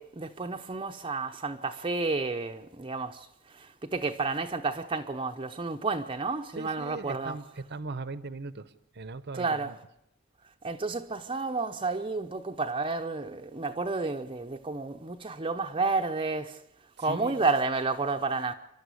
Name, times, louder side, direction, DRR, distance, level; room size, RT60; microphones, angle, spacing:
voice 1, 0.0-7.4 9.3-9.7 10.6-16.6 17.0-18.5, right 3 dB, 25° right, 0.8 m, -31 dB
voice 2, 6.6-9.8 17.0-17.4, right 3 dB, 55° right, 0.9 m, -39 dB
29.0 x 12.0 x 8.4 m
head